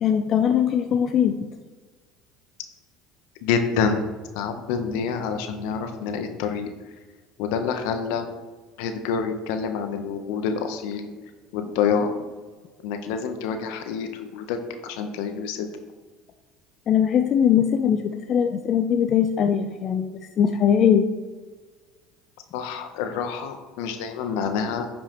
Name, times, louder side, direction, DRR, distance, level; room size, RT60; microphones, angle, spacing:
voice 1, 0.0-1.3 16.9-18.0 18.3-20.1 20.4-21.0, left 8 dB, 45° left, 6 dB, 0.5 m, -20 dB
voice 2, 3.4-4.0 4.3-6.7 7.4-8.3 8.8-11.1 11.5-12.2 12.8-14.6 14.8-15.7 22.5-24.9, left 6 dB, 75° left, 7 dB, 0.8 m, -27 dB
9.8 x 5.4 x 3.0 m, 1.4 s
supercardioid pair, 90°, 0 cm